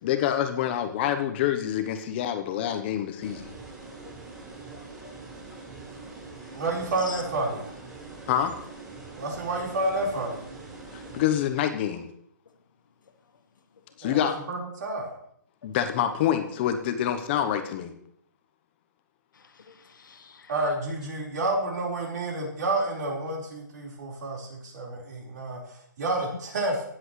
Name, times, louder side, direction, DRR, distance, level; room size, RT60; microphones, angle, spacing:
voice 1, 0.0-3.5 8.3-8.5 10.9-12.1 14.0-14.4 15.6-17.9, left 10 dB, 35° left, 8 dB, 0.8 m, -26 dB
sound 1, 3.2-11.2, right 3 dB, 10° right, 4.1 m, -43 dB
voice 2, 4.7-5.1 7.0-7.2 11.0-11.1 19.3-20.5, left 6 dB, 80° left, 7 dB, 1.5 m, -46 dB
voice 3, 6.5-7.8 9.2-10.4 14.0-15.1 20.5-26.8, right 2 dB, 60° right, -1 dB, 4.3 m, -30 dB
18.0 x 7.8 x 3.1 m, 0.69 s
hypercardioid pair, 150°, 10 cm